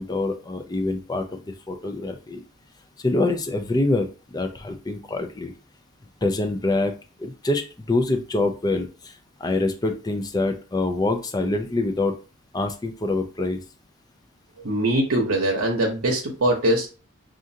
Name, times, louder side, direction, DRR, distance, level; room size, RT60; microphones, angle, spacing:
voice 1, 0.0-2.4 3.0-5.5 6.2-6.9 7.2-12.2 12.5-13.6, left 2 dB, 20° left, 5 dB, 0.5 m, -25 dB
voice 2, 14.6-16.9, right 1 dB, 75° right, -1 dB, 0.9 m, -22 dB
6.1 x 2.5 x 2.7 m, 0.33 s
head